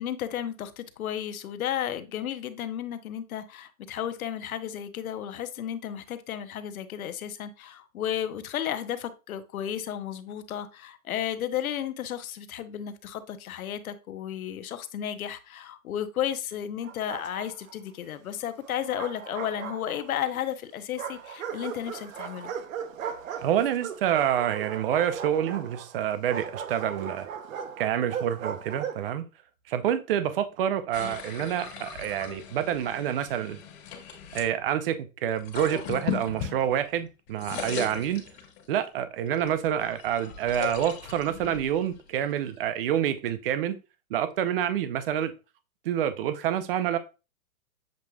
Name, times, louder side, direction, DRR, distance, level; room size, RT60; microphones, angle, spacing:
voice 1, 0.0-22.5, left 10 dB, 80° left, 0.8 m, -33 dB
Bark, 16.8-17.7 18.7-20.3 21.0-29.1, right 7 dB, 65° right, 0.9 m, -38 dB
voice 2, 23.4-27.3 27.8-29.2 29.7-33.6 34.3-38.2 38.7-43.8 44.1-45.3 45.8-47.0, right 10 dB, 45° right, 0.6 m, -27 dB
sound 1, 30.9-34.5 35.3-37.0 37.3-38.8 39.3-42.7, left 8 dB, 50° left, 1.8 m, -38 dB
7.4 x 3.1 x 2.3 m
hypercardioid pair, 155°, 42 cm